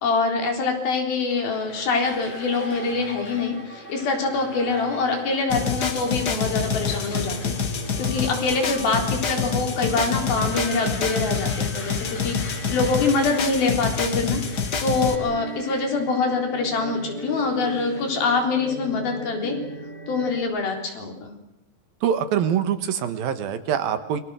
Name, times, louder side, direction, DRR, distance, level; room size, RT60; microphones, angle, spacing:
voice 1, 0.0-14.4 14.8-19.6 20.1-21.3, left 4 dB, 80° left, 3 dB, 5.8 m, -25 dB
sound 1, 1.2-18.5, left 2 dB, 65° left, 6.4 m, -42 dB
sound 2, 1.5-20.4, right 2 dB, 40° right, 0.5 m, -39 dB
sound 3, 5.5-15.1, left 5 dB, 40° left, 1.6 m, -27 dB
voice 2, 22.0-24.2, right 9 dB, 75° right, 10 dB, 3.3 m, -24 dB
29.0 x 24.0 x 6.5 m, 0.80 s
omnidirectional pair, 4.2 m